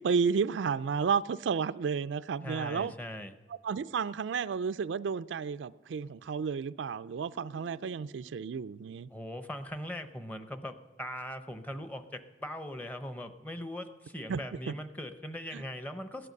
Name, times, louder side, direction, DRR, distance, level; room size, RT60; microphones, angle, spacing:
voice 1, 0.0-2.9 3.5-9.1 14.3-14.8 15.5-15.6, right 6 dB, 80° right, 0.4 m, -32 dB
voice 2, 2.4-3.3 9.1-16.3, left 1 dB, 10° left, 0.7 m, -40 dB
Guitar, 7.2-10.8, left 1 dB, 75° left, 4.7 m, -60 dB
17.0 x 11.0 x 6.5 m
head